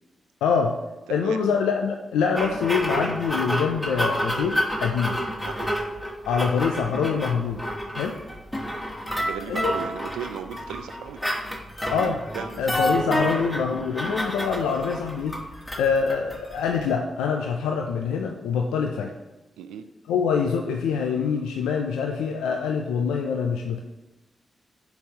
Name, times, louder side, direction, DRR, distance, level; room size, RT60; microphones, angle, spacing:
voice 1, 0.4-0.8 1.1-5.2 6.3-7.6 7.9-8.2 9.5-9.7 11.9-12.2 12.6-15.4 15.8-19.1 20.1-23.8, left 6 dB, 90° left, 3 dB, 0.3 m, -25 dB
voice 2, 1.1-1.4 5.4-5.7 9.1-11.2 11.9-12.6 19.6-19.9, right 8 dB, 90° right, 9 dB, 0.3 m, -36 dB
sound 1, 2.3-16.9, equal, 15° left, 1.5 m, -29 dB
9.6 x 3.9 x 2.8 m, 1.1 s
supercardioid pair, 40°, 0 cm